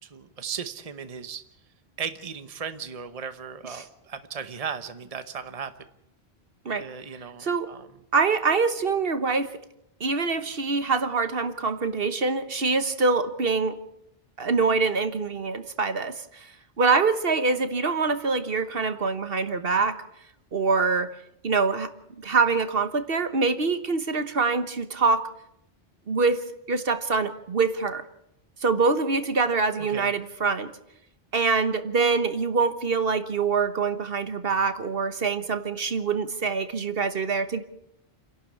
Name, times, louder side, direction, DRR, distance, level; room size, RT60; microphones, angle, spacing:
voice 1, 0.0-1.5 2.0-5.7 6.8-7.9 29.8-30.1, right 6 dB, 35° right, 10 dB, 1.1 m, -36 dB
voice 2, 8.1-9.6 10.0-13.8 14.4-16.5 16.8-20.0 20.5-21.1 21.4-21.9 22.2-25.3 26.1-28.0 28.6-30.7 31.3-37.6, right 4 dB, 65° right, 10 dB, 1.4 m, -25 dB
29.5 x 11.5 x 8.3 m, 0.79 s
omnidirectional pair, 1.1 m